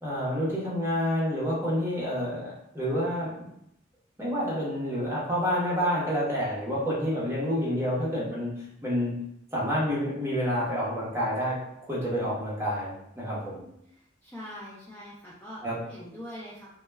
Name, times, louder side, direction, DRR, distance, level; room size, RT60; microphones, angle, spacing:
voice 1, 0.0-3.5 4.2-8.5 8.8-9.1 9.5-11.6 11.9-12.9 13.2-13.6 15.6-15.8, equal, 15° right, -7 dB, 0.7 m, -28 dB
voice 2, 13.9-16.7, equal, 10° left, -7 dB, 0.3 m, -43 dB
2.1 x 2.1 x 3.2 m, 0.77 s
head